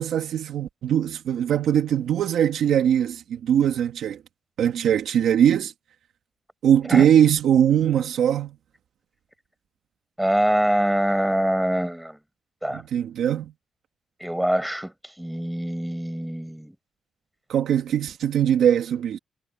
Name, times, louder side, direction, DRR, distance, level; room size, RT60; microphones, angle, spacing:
voice 1, 0.0-4.2 4.6-5.7 6.6-8.5 12.7-13.5 17.5-19.2, right 9 dB, 70° right, 1.5 m, -21 dB
voice 2, 10.2-12.2 12.6-12.8 14.2-16.7, equal, 5° right, 7.5 m, -24 dB
cardioid pair, 165°, 0 cm